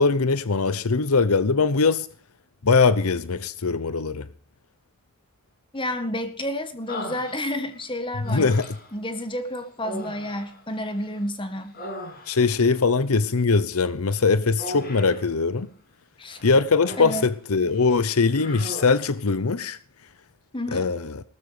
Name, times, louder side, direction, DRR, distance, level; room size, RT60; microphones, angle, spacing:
voice 1, 0.0-2.1 2.6-4.3 8.3-8.7 12.3-15.7 16.4-19.8 20.7-21.2, left 4 dB, 80° left, 0.8 m, -21 dB
voice 2, 5.7-8.5 8.9-11.8 16.2-16.4 17.0-17.3 20.5-20.9, left 1 dB, 25° left, 1.7 m, -30 dB
Human voice, 6.9-7.8 8.2-9.0 9.8-11.2 11.5-12.6 14.6-15.3 16.3-17.3 17.7-17.9 18.3-19.1, left 1 dB, 45° left, 7.2 m, -38 dB
18.5 x 14.0 x 5.0 m
head